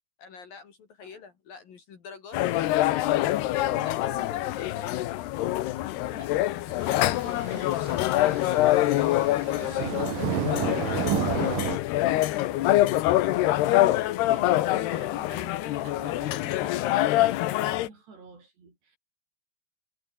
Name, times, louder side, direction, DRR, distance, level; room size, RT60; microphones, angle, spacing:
voice 1, 0.2-4.9, left 5 dB, 50° left, 4.1 m, -46 dB
sound 1, 2.3-17.9, left 15 dB, 70° left, 2.7 m, -25 dB
voice 2, 3.4-4.3 6.1-11.5 14.0-19.0, right 4 dB, 55° right, 9.4 m, -49 dB
sound 2, 6.8-11.8, right 13 dB, 85° right, 1.8 m, -32 dB
omnidirectional pair, 5.6 m